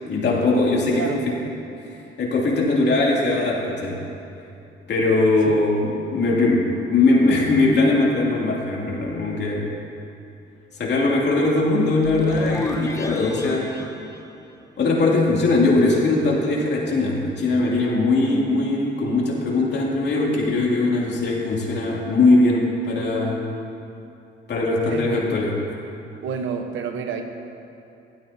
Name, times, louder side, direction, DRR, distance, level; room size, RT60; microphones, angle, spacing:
voice 1, 0.1-1.2 2.2-4.0 4.9-9.7 10.7-13.7 14.8-23.4 24.5-25.5, left 2 dB, 60° left, -3 dB, 2.6 m, -20 dB
voice 2, 0.9-1.2 5.5-5.6 24.9-25.3 26.2-27.2, right 6 dB, 80° right, 5 dB, 1.1 m, -29 dB
sound 1, 11.8-15.1, left 2 dB, 15° left, 0.9 m, -34 dB
16.0 x 12.5 x 2.8 m, 2.7 s
cardioid pair, 90°, 20 cm